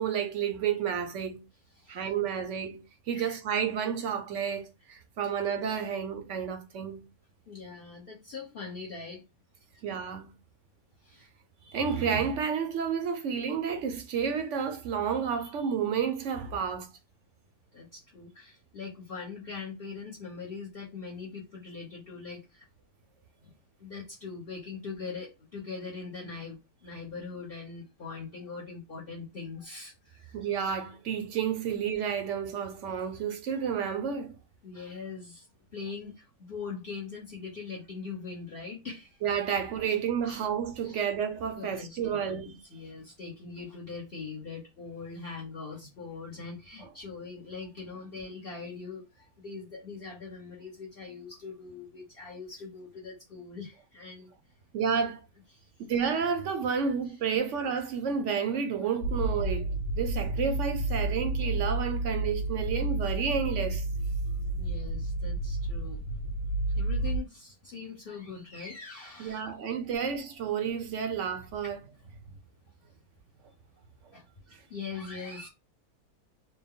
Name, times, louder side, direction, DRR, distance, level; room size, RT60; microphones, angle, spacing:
voice 1, 0.0-1.4 1.9-7.1 9.8-10.4 11.7-16.9 30.3-34.4 39.2-42.6 54.7-55.2 55.9-63.8 69.2-71.8, right 7 dB, 60° right, 1.0 m, -31 dB
voice 2, 1.7-2.1 3.1-3.4 7.5-9.2 11.0-11.3 17.7-22.6 23.8-30.3 32.9-33.0 34.6-35.5 35.7-39.2 40.3-40.4 40.8-41.0 41.6-42.4 42.7-49.1 49.4-54.3 55.5-55.6 64.6-66.0 66.7-69.4 74.1-74.2 74.7-75.5, left 5 dB, 40° left, 1.1 m, -42 dB
sound 1, 59.0-67.2, right 2 dB, 75° left, 1.7 m, -30 dB
4.4 x 2.1 x 3.6 m
omnidirectional pair, 1.6 m